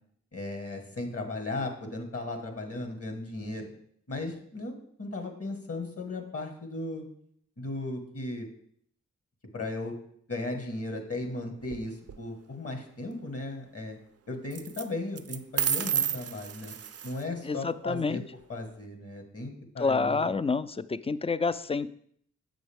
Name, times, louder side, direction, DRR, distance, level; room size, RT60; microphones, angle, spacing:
voice 1, 0.3-3.7 4.1-7.0 7.6-8.5 9.5-9.9 10.3-14.0 14.3-16.7 17.0-18.2 18.5-20.3, left 2 dB, 50° left, 5 dB, 1.7 m, -36 dB
sound 1, 11.6-12.2 14.5-14.8 15.2-17.2, right 8 dB, 55° right, 0.5 m, -31 dB
voice 2, 17.4-18.2 19.8-21.9, left 4 dB, 20° left, 15 dB, 0.4 m, -28 dB
6.9 x 6.3 x 3.5 m, 0.65 s
cardioid pair, 40°, 30 cm